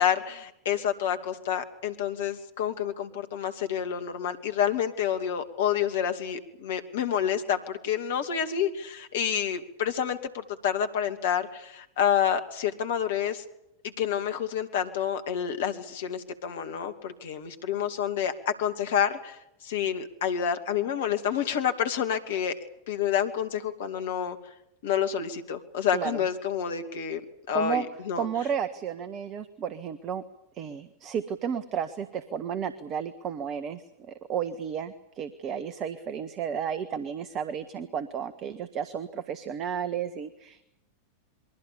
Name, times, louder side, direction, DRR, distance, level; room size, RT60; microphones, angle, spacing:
voice 1, 0.0-13.4 13.8-22.6 22.9-24.4 24.8-27.2 27.5-28.3, left 9 dB, 55° left, 7 dB, 2.6 m, -28 dB
voice 2, 27.5-27.9 28.2-30.2 30.5-40.7, right 8 dB, 35° right, 13 dB, 1.5 m, -32 dB
27.5 x 22.5 x 7.1 m, 0.82 s
figure-of-eight pair, 90°, 0 cm